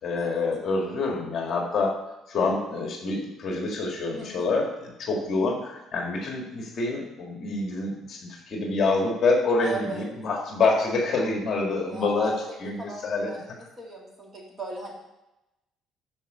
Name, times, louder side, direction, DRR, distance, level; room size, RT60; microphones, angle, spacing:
voice 1, 0.0-1.9 2.3-12.3 12.6-13.3, left 3 dB, 40° left, 1 dB, 1.8 m, -26 dB
voice 2, 4.2-4.5 9.6-10.1 11.9-14.9, right 2 dB, 25° right, -1 dB, 1.8 m, -37 dB
13.0 x 4.5 x 5.5 m, 0.94 s
cardioid pair, 165°, 0 cm